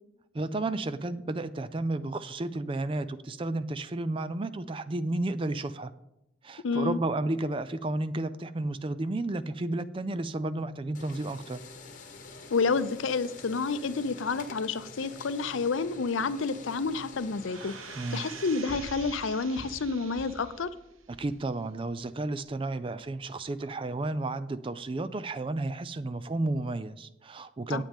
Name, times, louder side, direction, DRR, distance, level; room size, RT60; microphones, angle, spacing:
voice 1, 0.3-5.9 6.4-11.6 17.9-18.2 21.1-27.8, right 2 dB, 25° right, 14 dB, 0.4 m, -32 dB
voice 2, 6.6-7.0 12.5-17.7 18.1-20.7 27.7-27.8, left 4 dB, 70° left, 14 dB, 0.5 m, -29 dB
sound 1, 10.9-18.6, left 3 dB, 40° left, 1.3 m, -47 dB
sound 2, 17.4-20.8 21.3-21.4, right 8 dB, 80° right, 0.8 m, -46 dB
sound 3, 18.7-22.0 22.5-22.6, equal, 10° left, 2.1 m, -47 dB
16.5 x 9.1 x 3.6 m, 0.88 s
head